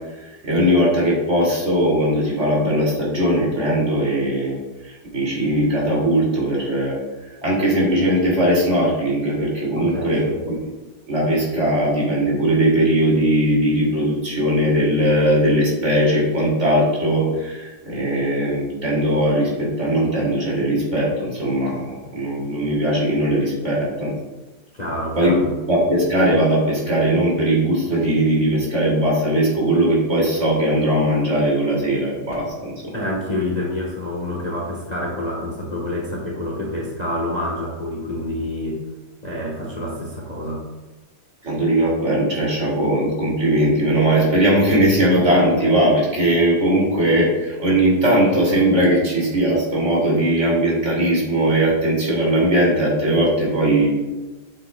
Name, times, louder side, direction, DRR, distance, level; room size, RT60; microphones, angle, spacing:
voice 1, 0.2-4.5 4.8-7.0 7.4-10.7 11.1-24.1 25.2-32.7 41.4-53.9, right 1 dB, 40° right, -4 dB, 2.9 m, -19 dB
voice 2, 9.7-10.4 24.7-25.5 32.9-38.8 39.2-40.6, left 1 dB, 25° left, -3 dB, 1.3 m, -27 dB
8.6 x 8.2 x 2.3 m, 1.1 s
omnidirectional pair, 1.8 m